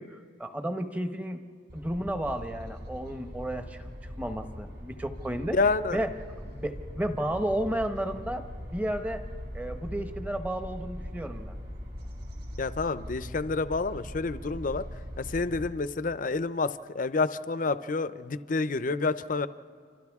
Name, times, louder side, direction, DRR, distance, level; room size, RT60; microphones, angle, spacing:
voice 1, 0.0-1.4 1.7-3.9 4.2-5.6 5.9-6.1 6.4-8.4 8.7-9.2 9.5-11.6, right 1 dB, 10° right, 7 dB, 0.9 m, -32 dB
sound 1, 1.7-15.7, equal, 55° right, 4.4 m, -41 dB
voice 2, 5.5-6.0 12.6-14.8 15.2-16.7 16.9-19.5, left 3 dB, 45° left, 13 dB, 0.5 m, -28 dB
29.0 x 26.0 x 3.6 m, 2.1 s
head